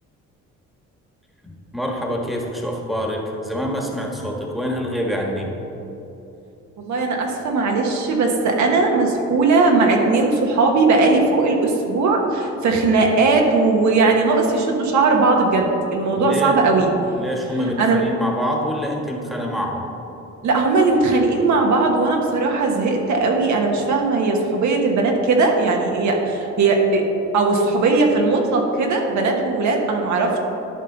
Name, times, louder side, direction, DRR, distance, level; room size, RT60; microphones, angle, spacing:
voice 1, 1.4-5.5 16.1-16.6 17.2-19.9, equal, ahead, -1 dB, 1.5 m, -26 dB
voice 2, 6.8-16.9 17.8-18.0 20.4-27.0 27.3-30.4, right 3 dB, 70° right, 1 dB, 1.2 m, -18 dB
11.5 x 5.5 x 4.0 m, 3.0 s
cardioid pair, 90°, 30 cm